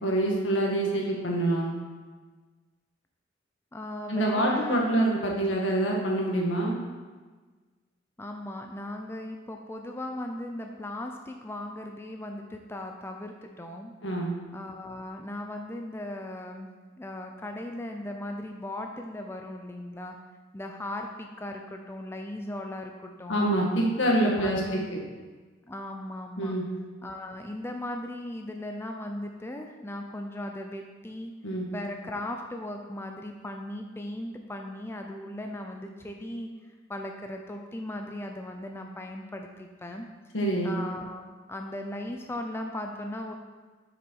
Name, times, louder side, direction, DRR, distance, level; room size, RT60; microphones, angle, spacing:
voice 1, 0.0-1.7 4.1-6.8 14.0-14.4 23.3-25.0 26.4-26.6 31.4-31.7 40.3-40.8, right 1 dB, 80° left, -1 dB, 1.7 m, -26 dB
voice 2, 3.7-5.1 8.2-13.9 14.5-16.7 17.0-20.2 20.5-23.5 24.0-24.9 25.7-26.5 27.0-31.3 31.7-40.1 40.6-43.3, left 1 dB, 15° left, 3 dB, 0.4 m, -37 dB
8.0 x 6.1 x 4.6 m, 1.4 s
head